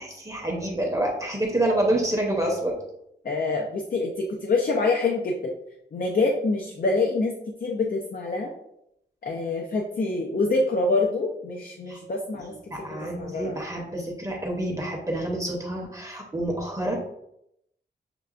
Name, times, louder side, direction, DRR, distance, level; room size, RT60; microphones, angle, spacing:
voice 1, 0.0-2.8 11.9-12.0 12.7-17.0, right 1 dB, 20° right, -1 dB, 0.8 m, -27 dB
voice 2, 3.2-5.5 5.9-7.4 7.6-8.5 9.2-12.9 13.2-13.6, left 3 dB, 55° left, 1 dB, 0.5 m, -26 dB
6.6 x 2.3 x 2.4 m, 0.78 s
wide cardioid pair, 120°, 18 cm